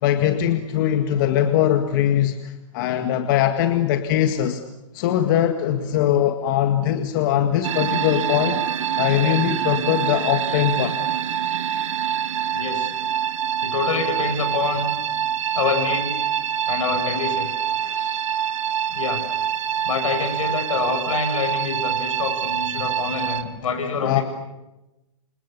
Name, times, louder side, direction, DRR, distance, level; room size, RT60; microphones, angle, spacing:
voice 1, 0.0-4.6 4.9-8.6 9.0-11.0 17.8-18.0 24.0-24.2, left 10 dB, 40° left, 6 dB, 1.9 m, -21 dB
sound 1, 7.6-23.4, right 9 dB, 70° right, 2.3 m, -25 dB
voice 2, 12.5-12.9 13.6-15.0 15.5-16.2 16.7-17.5 18.0-18.2 18.9-19.3 19.8-24.2, left 5 dB, 75° left, 6 dB, 7.8 m, -26 dB
29.0 x 27.5 x 6.9 m, 0.99 s
hypercardioid pair, 160°, 17 cm